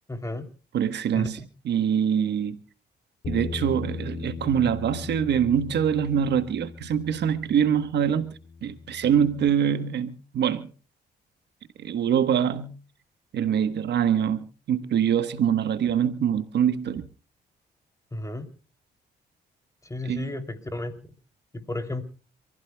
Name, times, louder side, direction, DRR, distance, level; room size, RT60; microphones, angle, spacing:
voice 1, 0.1-0.4 1.1-1.3 18.1-18.5 19.9-20.9 21.7-22.0, left 2 dB, 15° left, 3.0 m, -32 dB
voice 2, 0.7-2.6 3.3-8.3 8.6-10.7 11.8-12.8 13.3-17.1 20.0-20.4, right 8 dB, 70° right, 1.2 m, -24 dB
Bass guitar, 3.2-9.5, left 4 dB, 60° left, 2.5 m, -38 dB
28.0 x 15.0 x 2.3 m
cardioid pair, 75°, 19 cm